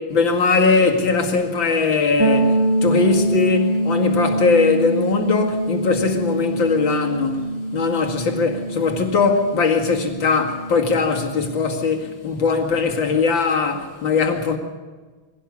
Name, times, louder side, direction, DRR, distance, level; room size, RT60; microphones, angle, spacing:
voice 1, 0.0-14.6, left 4 dB, 70° left, 2.9 m, -20 dB
sound 1, 2.2-11.9, right 1 dB, 20° right, 0.9 m, -24 dB
22.5 x 17.0 x 8.3 m
omnidirectional pair, 2.2 m